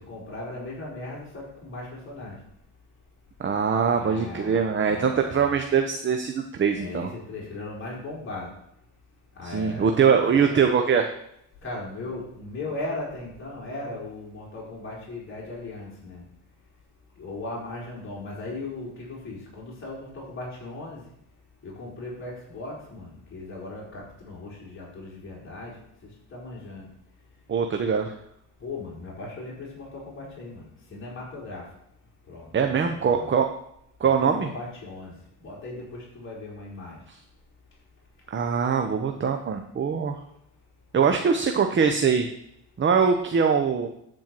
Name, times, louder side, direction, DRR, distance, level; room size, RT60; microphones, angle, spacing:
voice 1, 0.0-2.4 3.9-5.6 6.8-8.5 9.4-10.0 10.2-10.6 11.6-16.2 17.2-21.0 21.6-25.7 26.3-26.9 28.6-30.6 30.9-31.6 32.3-33.3 34.0-35.1 35.4-37.0, left 2 dB, 30° left, -5 dB, 4.2 m, -38 dB
voice 2, 3.4-7.1 9.4-11.1 27.5-28.1 32.5-33.5 34.0-34.5 37.1-37.2 38.3-40.2 40.9-42.3 42.8-43.9, right 6 dB, 25° right, 5 dB, 0.8 m, -22 dB
10.0 x 4.6 x 7.6 m, 0.76 s
cardioid pair, 115°, 42 cm